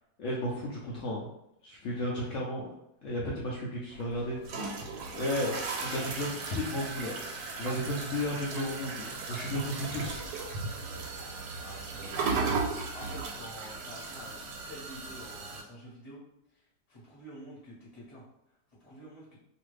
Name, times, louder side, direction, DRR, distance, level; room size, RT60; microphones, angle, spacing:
voice 1, 0.2-1.3 1.6-2.7 3.0-4.7 5.1-5.5 5.8-7.2 7.6-10.2, left 1 dB, 80° left, -4 dB, 0.6 m, -33 dB
sound 1, 3.9-15.6, right 4 dB, 80° right, 1.2 m, -36 dB
voice 2, 11.6-12.3 12.9-14.4 14.7-16.2 16.5-18.2 18.8-19.4, equal, 25° left, -6 dB, 1.0 m, -48 dB
2.7 x 2.4 x 3.1 m, 0.82 s
omnidirectional pair, 1.9 m